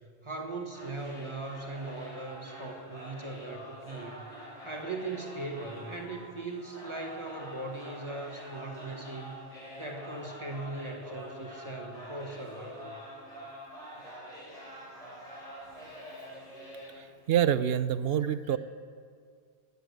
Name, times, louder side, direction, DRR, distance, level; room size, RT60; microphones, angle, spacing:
voice 1, 0.2-4.3 4.6-9.4 9.8-13.0, right 2 dB, 25° right, 2 dB, 1.5 m, -39 dB
sound 1, 0.7-17.4, equal, 35° left, 4.4 m, -46 dB
voice 2, 16.9-18.6, right 10 dB, 70° right, 14 dB, 0.8 m, -27 dB
14.0 x 8.4 x 9.4 m, 2.1 s
omnidirectional pair, 1.1 m